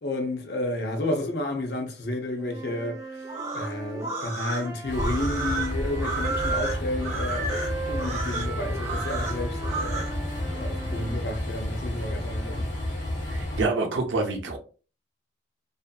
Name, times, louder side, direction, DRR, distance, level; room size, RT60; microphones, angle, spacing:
voice 1, 0.0-3.0 3.5-10.1 10.5-12.7, left 1 dB, 55° left, 0.6 m, -31 dB
Wind instrument woodwind instrument, 2.4-6.8 7.5-11.2, right 3 dB, 15° right, 0.3 m, -37 dB
sound 1, 3.2-10.1, right 3 dB, 35° right, 0.8 m, -32 dB
Train, 4.9-13.7, left 1 dB, 70° left, 1.1 m, -31 dB
voice 2, 13.3-14.6, right 3 dB, 70° right, 0.6 m, -27 dB
2.6 x 2.5 x 2.2 m
head